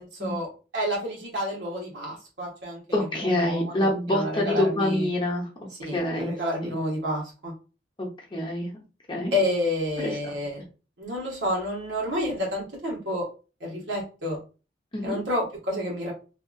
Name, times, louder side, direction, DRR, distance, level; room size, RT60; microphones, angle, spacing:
voice 1, 0.0-2.8 3.4-5.1 5.8-7.5 9.3-10.6 11.0-13.3 13.6-14.4 15.0-16.1, left 1 dB, 80° right, -2 dB, 1.2 m, -29 dB
voice 2, 2.9-5.5 5.9-6.3 6.6-6.8 8.0-8.8 9.1-9.3 10.0-10.2 14.9-15.2, left 1 dB, 25° left, 0 dB, 0.7 m, -26 dB
2.7 x 2.4 x 2.5 m, 0.33 s
head